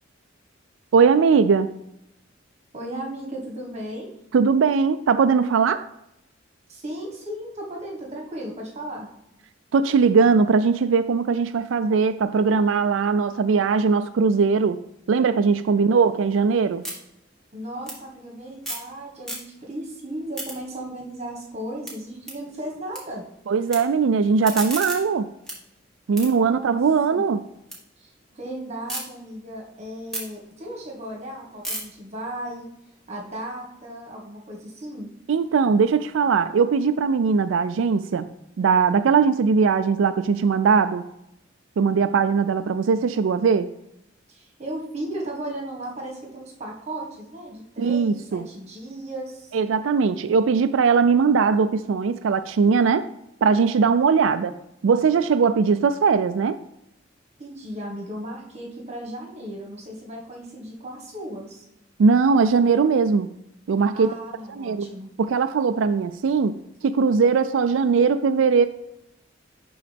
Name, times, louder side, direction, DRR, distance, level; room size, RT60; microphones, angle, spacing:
voice 1, 0.9-1.7 4.3-5.9 9.7-14.8 15.1-16.8 23.5-25.3 26.1-27.4 35.3-38.3 38.6-41.0 41.8-43.7 47.8-48.5 49.5-53.1 53.4-54.5 54.8-56.6 62.0-63.3 63.7-64.1 64.6-64.9 65.2-66.5 66.8-68.7, right 5 dB, 85° right, 10 dB, 0.4 m, -20 dB
voice 2, 2.7-4.1 6.7-9.1 15.7-15.9 17.5-23.2 26.2-26.8 27.1-27.2 28.0-32.7 33.1-35.1 44.3-49.6 57.4-61.6 63.9-65.1, right 1 dB, 35° right, -1 dB, 1.6 m, -36 dB
sound 1, 15.9-18.9 19.2-19.8 20.1-23.0 23.3-23.8 24.2-27.8 28.2-29.0 29.5-33.6, right 1 dB, 5° left, 1.9 m, -37 dB
11.5 x 3.9 x 3.4 m, 0.83 s
head